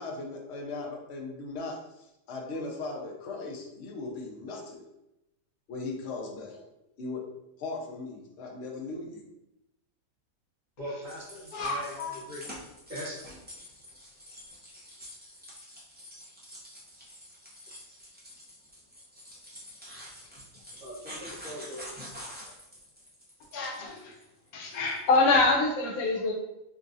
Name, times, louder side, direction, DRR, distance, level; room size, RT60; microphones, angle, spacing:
voice 1, 0.0-4.8 5.7-6.6 7.0-7.2 7.6-9.3, left 3 dB, 60° left, 0 dB, 0.8 m, -38 dB
voice 2, 10.8-12.4 12.9-13.2 20.8-21.9, equal, 70° right, -11 dB, 1.6 m, -40 dB
sound 1, 11.0-25.1, equal, 10° right, 0.4 m, -47 dB
voice 3, 11.5-12.1 23.5-24.1 24.5-26.3, left 3 dB, 80° left, 0 dB, 1.2 m, -26 dB
3.8 x 2.4 x 2.6 m, 0.88 s
omnidirectional pair, 1.5 m